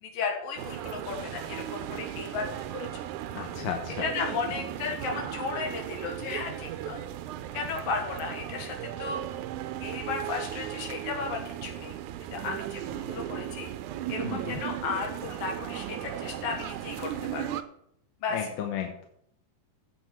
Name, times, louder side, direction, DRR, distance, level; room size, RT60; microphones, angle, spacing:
voice 1, 0.0-3.0 4.0-7.0 7.5-9.2 9.8-11.9 12.3-13.7 14.1-17.4 18.2-18.4, left 5 dB, 90° left, 2 dB, 3.3 m, -34 dB
sound 1, 0.6-17.6, right 12 dB, 75° right, 2.0 m, -36 dB
voice 2, 3.3-4.1 14.2-14.6 18.3-19.1, left 8 dB, 75° left, 3 dB, 2.5 m, -34 dB
16.0 x 7.3 x 4.4 m, 0.72 s
omnidirectional pair, 3.9 m